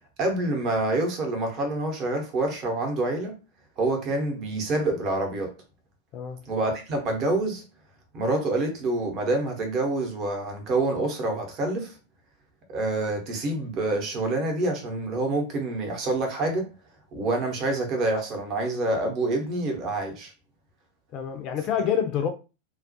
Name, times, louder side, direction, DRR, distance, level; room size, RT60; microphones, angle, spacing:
voice 1, 0.2-3.3 3.8-5.5 6.5-7.6 8.1-11.9 12.7-16.7 17.1-20.3, right 2 dB, 35° right, 0.8 m, -27 dB
voice 2, 6.1-6.4 21.1-22.3, left 8 dB, 35° left, 0.5 m, -27 dB
2.3 x 2.1 x 2.7 m
figure-of-eight pair, 90°, 0 cm